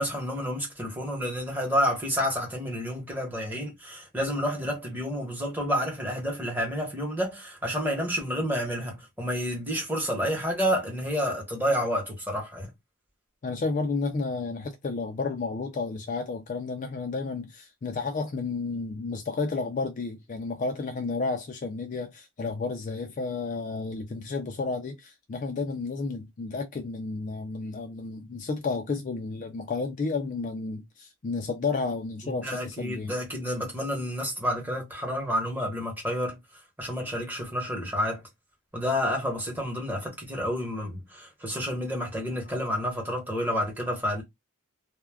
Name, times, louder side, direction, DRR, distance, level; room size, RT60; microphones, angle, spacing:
voice 1, 0.0-12.7 32.2-36.4 36.8-38.2 38.7-44.2, equal, 10° right, 0.9 m, -29 dB
voice 2, 13.4-33.1, left 4 dB, 35° left, 0.3 m, -32 dB
2.3 x 2.1 x 3.2 m
head